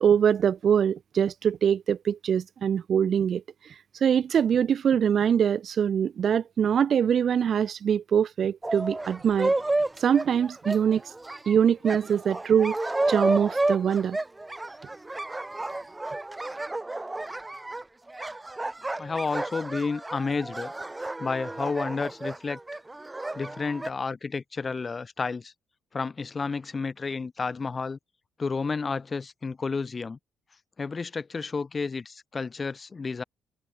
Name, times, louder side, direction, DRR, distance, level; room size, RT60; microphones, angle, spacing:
voice 1, 0.0-3.7 4.0-9.5 10.0-11.0 11.5-12.8 13.1-14.2, right 8 dB, 55° right, 0.4 m, -23 dB
sound 1, 8.6-23.9, right 2 dB, 15° right, 0.9 m, -31 dB
voice 2, 19.0-20.7 21.2-22.6 23.3-25.5 25.9-28.0 28.4-30.2 30.8-33.2, left 4 dB, 35° left, 1.1 m, -31 dB
cardioid pair, 90°, 0 cm